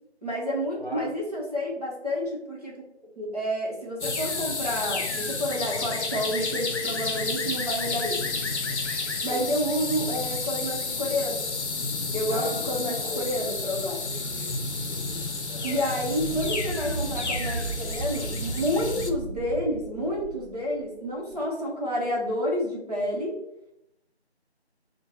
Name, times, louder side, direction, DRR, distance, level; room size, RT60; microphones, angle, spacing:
voice 1, 0.2-2.8 3.2-8.2 9.2-11.4 12.1-14.0 15.6-23.4, equal, 35° right, -5 dB, 0.9 m, -29 dB
voice 2, 0.8-1.1 9.1-9.5 12.3-13.3 14.1-14.5 14.9-15.8 16.3-16.4, equal, 50° left, 2 dB, 0.7 m, -39 dB
sound 1, 4.0-19.1, left 3 dB, 90° left, 0.6 m, -31 dB
sound 2, 14.3-21.4, right 3 dB, 70° right, 0.5 m, -36 dB
5.1 x 2.2 x 3.0 m, 0.82 s
figure-of-eight pair, 170°, 33 cm